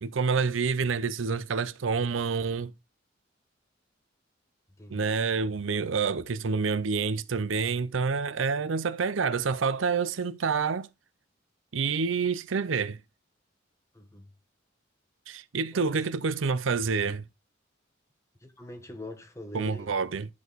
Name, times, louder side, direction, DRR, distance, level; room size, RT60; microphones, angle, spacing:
voice 1, 0.0-2.7 4.9-10.9 11.7-13.0 15.3-17.2 19.5-20.3, right 5 dB, 85° right, 0.6 m, -28 dB
voice 2, 4.8-5.1 13.9-14.3 15.7-16.0 18.4-19.9, left 1 dB, 15° left, 1.3 m, -43 dB
10.5 x 4.7 x 4.0 m
head